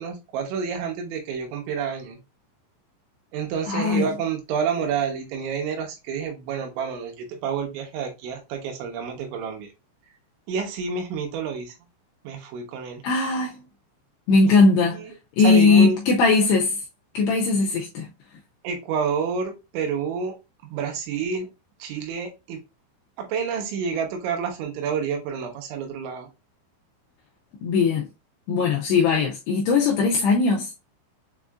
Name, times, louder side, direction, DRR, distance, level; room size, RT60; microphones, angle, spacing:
voice 1, 0.0-2.2 3.3-9.7 10.5-11.7 12.2-13.0 14.9-15.1 15.4-16.0 18.6-20.3 20.7-21.5 21.8-22.6 23.2-26.3, right 6 dB, 75° right, 3.2 m, -29 dB
voice 2, 3.7-4.1 13.0-13.6 14.3-15.0 15.4-16.8 17.1-18.1 27.6-28.1 28.5-30.7, left 4 dB, 90° left, 2.4 m, -19 dB
7.4 x 2.5 x 2.3 m
omnidirectional pair, 5.6 m